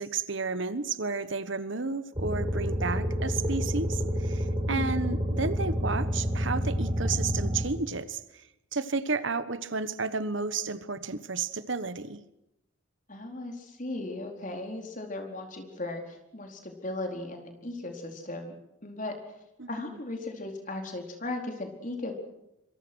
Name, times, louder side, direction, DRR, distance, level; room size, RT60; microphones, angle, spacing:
voice 1, 0.0-8.4 8.7-12.2 19.6-20.0, right 4 dB, 60° right, 13 dB, 1.2 m, -32 dB
sound 1, 2.2-7.6, equal, 20° right, 5.5 m, -29 dB
voice 2, 4.7-5.0 13.1-18.5 18.8-19.3 19.7-22.1, left 2 dB, 40° left, 3 dB, 4.4 m, -37 dB
26.0 x 23.5 x 6.3 m, 0.84 s
head